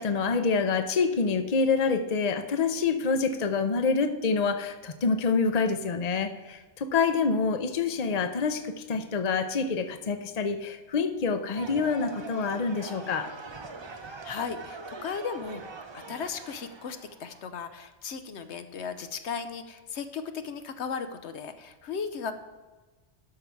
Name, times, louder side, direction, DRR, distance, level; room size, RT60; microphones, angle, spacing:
voice 1, 0.0-13.3, left 4 dB, 40° left, 8 dB, 0.8 m, -27 dB
sound 1, 11.6-17.4, right 4 dB, 30° right, 0.6 m, -43 dB
voice 2, 13.9-22.3, left 6 dB, 75° left, 9 dB, 1.0 m, -36 dB
12.5 x 5.8 x 4.6 m, 1.3 s
omnidirectional pair, 1.2 m